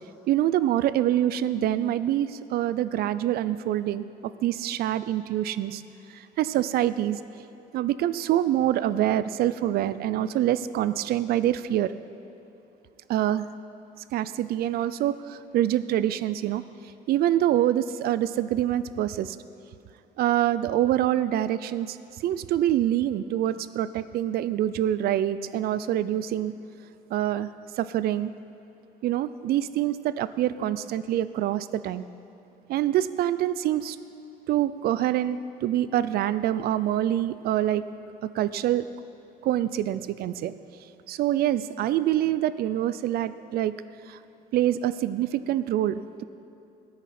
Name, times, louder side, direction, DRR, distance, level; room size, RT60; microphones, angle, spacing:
voice 1, 0.3-4.1 4.4-5.8 6.1-7.2 7.7-11.9 13.1-13.5 14.1-16.6 17.1-19.4 20.2-22.0 22.2-26.5 27.1-27.5 27.8-28.3 29.0-32.0 32.7-34.0 34.5-37.9 38.2-38.9 39.4-40.5 41.1-43.8 44.1-44.2 44.5-46.2, right 12 dB, 65° right, 15 dB, 0.4 m, -25 dB
13.5 x 10.0 x 4.3 m, 2.8 s
cardioid pair, 110°, 17 cm